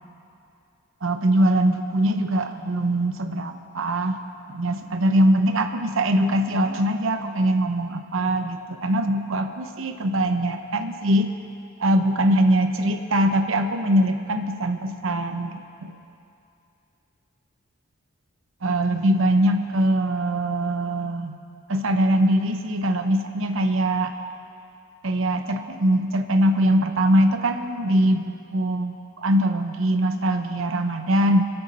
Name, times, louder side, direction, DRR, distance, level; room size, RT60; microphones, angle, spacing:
voice 1, 1.0-4.2 4.5-11.3 11.8-16.0 18.6-21.4 21.7-24.1 25.0-31.5, right 1 dB, 65° right, 7 dB, 0.8 m, -22 dB
23.5 x 7.9 x 4.3 m, 2.6 s
head